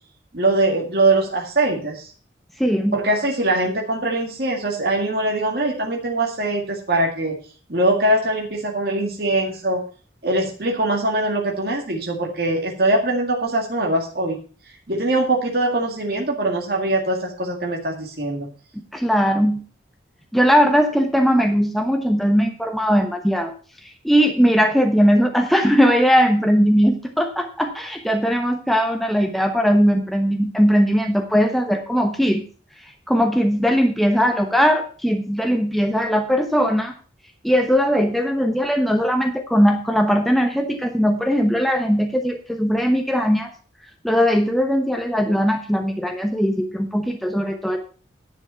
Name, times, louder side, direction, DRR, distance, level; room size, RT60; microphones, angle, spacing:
voice 1, 0.3-2.1 2.9-7.4 7.7-9.8 10.2-14.4 14.9-18.5, right 2 dB, 55° right, 0 dB, 2.0 m, -22 dB
voice 2, 2.6-3.0 18.7-19.6 20.3-23.5 24.0-32.4 33.1-36.9 37.4-43.5 44.0-47.8, equal, ahead, 4 dB, 1.0 m, -19 dB
10.5 x 7.1 x 5.6 m, 0.38 s
head